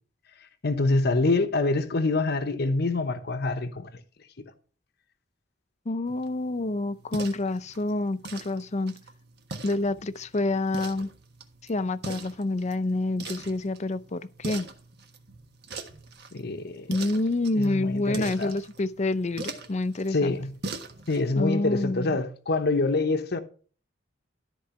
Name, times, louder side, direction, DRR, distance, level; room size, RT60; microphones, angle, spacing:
voice 1, 0.6-3.9 16.3-16.9 17.6-18.5 20.1-20.5 21.1-23.4, left 3 dB, 60° left, 0.9 m, -26 dB
voice 2, 5.9-8.9 9.6-11.1 11.7-14.7 16.9-20.3 21.4-22.2, left 2 dB, 35° left, 0.6 m, -28 dB
sound 1, 6.1-21.3, right 3 dB, 60° right, 1.4 m, -42 dB
13.5 x 4.6 x 5.8 m
head